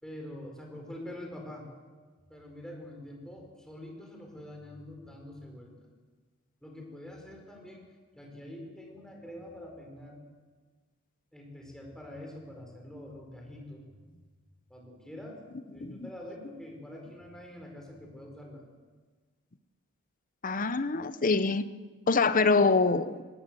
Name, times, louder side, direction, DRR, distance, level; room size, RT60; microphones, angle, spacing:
voice 1, 0.0-1.7 2.3-5.7 6.6-7.8 8.1-10.2 11.3-13.8 14.7-18.6, left 1 dB, 5° left, 0 dB, 4.9 m, -45 dB
voice 2, 20.4-21.7 22.1-23.2, left 4 dB, 40° left, 13 dB, 0.8 m, -25 dB
20.0 x 18.0 x 7.8 m, 1.4 s
head